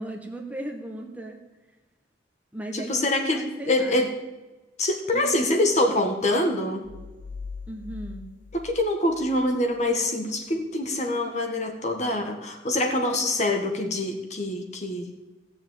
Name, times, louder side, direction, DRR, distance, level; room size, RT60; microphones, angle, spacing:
voice 1, 0.0-1.4 2.5-2.9 3.3-4.1 5.1-5.4 7.7-8.2, right 1 dB, 10° right, 1 dB, 1.4 m, -36 dB
voice 2, 2.7-4.2 4.8-6.9 8.5-15.1, left 1 dB, 40° left, 4 dB, 1.7 m, -25 dB
sound 1, 6.8-9.5, left 4 dB, 80° left, 1.6 m, -41 dB
15.5 x 7.1 x 8.8 m, 1.1 s
head